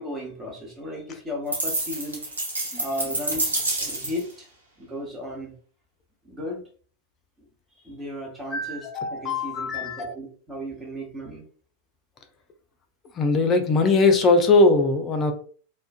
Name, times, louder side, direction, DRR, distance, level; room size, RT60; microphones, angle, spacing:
voice 1, 0.0-2.4 2.7-4.5 4.8-5.5 6.2-6.6 7.8-11.4, left 1 dB, 15° right, -2 dB, 1.0 m, -35 dB
sound 1, 1.5-4.3, right 2 dB, 80° right, 0.6 m, -28 dB
voice 2, 8.5-10.1 13.1-15.3, left 3 dB, 30° left, 6 dB, 0.5 m, -20 dB
2.4 x 2.2 x 2.4 m, 0.43 s
figure-of-eight pair, 90°, 0 cm